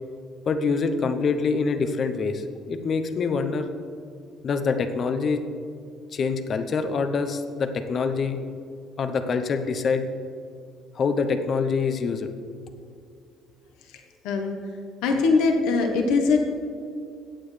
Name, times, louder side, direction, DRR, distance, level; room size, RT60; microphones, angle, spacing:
voice 1, 0.5-3.7 4.4-5.4 6.1-8.4 9.0-10.0 10.9-12.3, left 5 dB, 45° left, 8 dB, 0.8 m, -25 dB
voice 2, 14.2-14.6 15.0-16.4, left 4 dB, 85° left, 3 dB, 1.1 m, -21 dB
15.0 x 8.7 x 3.3 m, 2.4 s
supercardioid pair, 95°, 0 cm